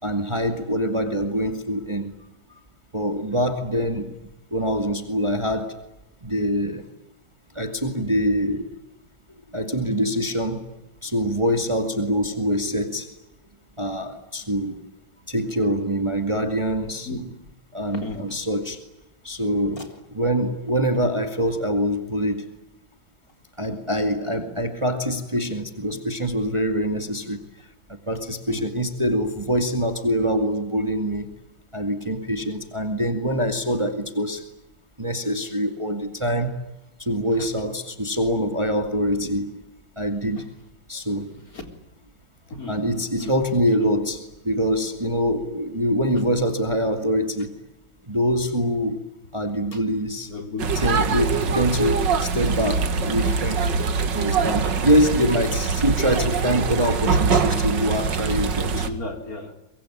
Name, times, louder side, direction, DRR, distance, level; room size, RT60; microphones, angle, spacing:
voice 1, 0.0-2.1 2.9-4.2 4.5-5.8 6.2-6.9 7.5-8.8 9.5-10.7 11.0-13.1 13.8-14.8 15.3-17.1 17.7-18.8 19.2-22.5 23.6-27.5 28.1-31.3 31.7-34.4 35.0-36.7 37.0-39.6 40.0-40.5 40.9-41.3 42.7-47.6 48.1-50.3 50.7-51.3 51.5-51.9 52.2-53.7 54.1-58.9, equal, 15° right, 7 dB, 2.2 m, -24 dB
voice 2, 17.9-18.4 19.8-19.9 28.5-28.6 40.4-40.5 41.1-41.2 41.5-41.6 42.5-42.8 43.2-43.3 49.7-49.8 50.3-50.7 55.1-55.3 58.7-59.5, left 3 dB, 45° left, 5 dB, 4.3 m, -34 dB
sound 1, 50.6-58.9, right 5 dB, 65° right, 2.4 m, -23 dB
24.0 x 23.0 x 10.0 m, 0.90 s
omnidirectional pair, 2.1 m